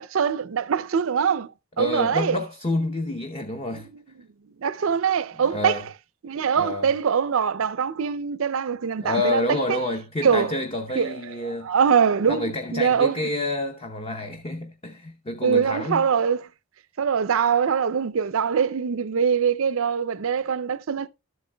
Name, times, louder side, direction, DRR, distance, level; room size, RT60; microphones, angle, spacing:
voice 1, 0.0-1.5 1.8-2.4 4.6-5.9 6.2-9.4 9.7-9.8 10.2-10.6 11.0-13.3 15.4-16.5 17.0-21.1, right 7 dB, 65° right, 0.5 m, -23 dB
voice 2, 1.8-3.9 5.5-5.8 6.6-6.9 9.0-11.7 12.3-16.1, left 2 dB, 25° left, 0.7 m, -28 dB
13.0 x 7.7 x 2.2 m
head